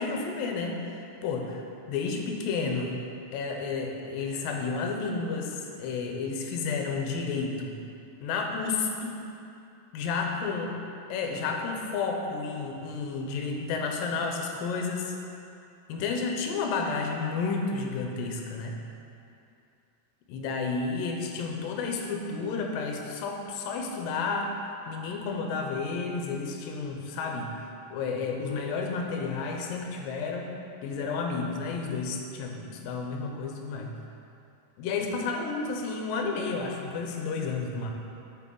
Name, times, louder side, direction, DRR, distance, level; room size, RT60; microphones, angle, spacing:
voice 1, 0.0-1.6 1.9-3.0 3.3-7.7 8.2-9.2 9.9-10.7 11.1-15.2 15.9-18.8 20.3-27.5 27.9-30.5 30.8-33.9 34.8-37.9, left 4 dB, 90° left, 2 dB, 2.4 m, -31 dB
8.2 x 6.1 x 3.8 m, 2.7 s
omnidirectional pair, 3.9 m